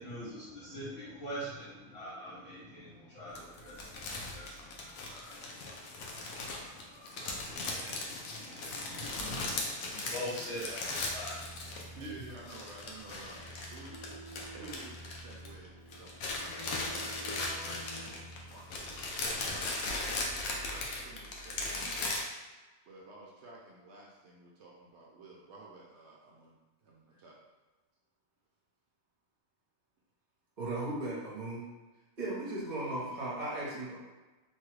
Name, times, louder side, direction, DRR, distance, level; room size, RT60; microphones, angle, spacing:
voice 1, 0.0-12.1, equal, 55° left, -10 dB, 1.0 m, -45 dB
sound 1, 3.4-12.1 12.3-15.7 15.9-22.2, left 2 dB, 80° left, 1.0 m, -38 dB
Keyboard (musical), 10.9-19.3, right 1 dB, 30° left, 0.4 m, -49 dB
voice 2, 11.9-13.4 13.7-14.2 14.5-21.9 22.9-26.6 26.8-27.4, right 2 dB, 65° right, -3 dB, 0.7 m, -51 dB
voice 3, 30.6-31.6 32.2-34.0, right 2 dB, 40° right, -6 dB, 1.0 m, -36 dB
3.0 x 2.3 x 3.2 m, 1.2 s
omnidirectional pair, 1.4 m